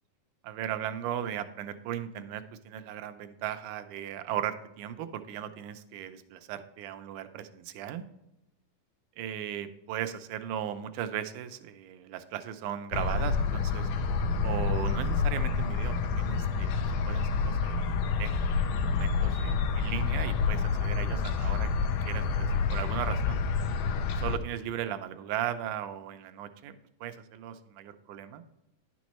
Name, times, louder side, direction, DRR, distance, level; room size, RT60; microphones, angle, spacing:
voice 1, 0.4-8.0 9.2-13.9 14.4-18.3 18.6-21.7 22.1-23.4 24.2-26.7 27.0-28.4, right 10 dB, 80° right, 9 dB, 2.1 m, -37 dB
sound 1, 12.9-24.4, left 5 dB, 85° left, 2.2 m, -28 dB
10.5 x 6.2 x 3.0 m, 0.87 s
omnidirectional pair, 3.7 m